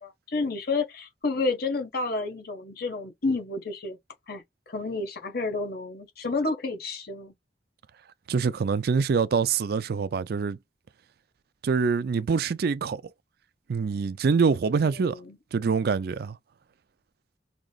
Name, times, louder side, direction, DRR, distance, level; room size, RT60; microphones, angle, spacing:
voice 1, 0.0-4.0 4.3-7.3 14.8-15.4, left 3 dB, 60° left, 1.3 m, -30 dB
voice 2, 8.3-10.6 11.6-13.0 13.7-15.2 15.5-16.4, right 5 dB, 60° right, 0.4 m, -25 dB
4.9 x 2.9 x 2.3 m
head